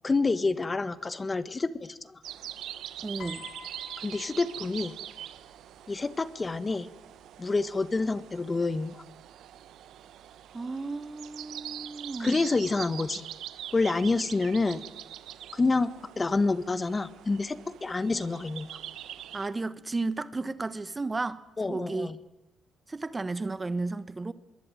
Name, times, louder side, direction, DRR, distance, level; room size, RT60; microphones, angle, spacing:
voice 1, 0.0-2.2 4.0-4.9 5.9-6.9 7.4-9.0 12.2-13.2 13.7-14.8 15.5-15.9 16.2-18.8 21.6-22.1, left 3 dB, 25° left, 1.6 m, -28 dB
sound 1, 2.2-19.5, right 11 dB, 80° right, 1.2 m, -44 dB
voice 2, 3.0-3.5 10.5-12.3 19.3-21.4 21.6-22.1 22.9-24.3, right 3 dB, 25° right, 1.2 m, -33 dB
Piano, 3.2-5.6 6.6-6.9, left 7 dB, 60° left, 3.1 m, -49 dB
25.5 x 22.0 x 9.3 m
cardioid pair, 90°, 0 cm